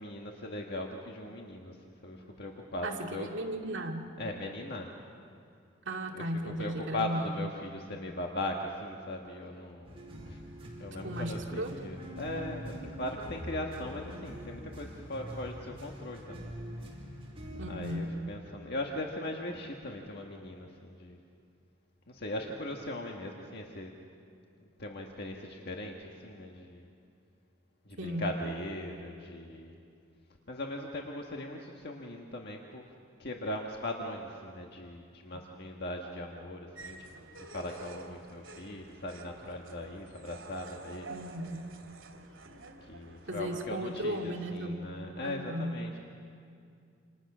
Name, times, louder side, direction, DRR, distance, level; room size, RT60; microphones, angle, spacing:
voice 1, 0.0-1.8 2.0-3.3 4.2-4.9 6.1-10.4 10.8-16.6 17.7-21.2 22.1-23.9 24.8-26.9 27.8-29.8 30.5-32.9 33.2-37.1 37.4-41.1 42.8-46.0, left 1 dB, 55° left, 1 dB, 1.6 m, -39 dB
voice 2, 2.8-4.1 5.9-7.4 11.0-11.8 17.5-18.2 28.0-28.3 41.1-41.7 43.3-44.9 45.2-45.8, right 1 dB, 65° right, 1 dB, 2.3 m, -36 dB
sound 1, 9.8-18.0, equal, 30° right, 4.8 m, -44 dB
sound 2, 36.7-44.6, right 2 dB, 80° right, 2.9 m, -50 dB
28.5 x 27.5 x 6.2 m, 2.4 s
head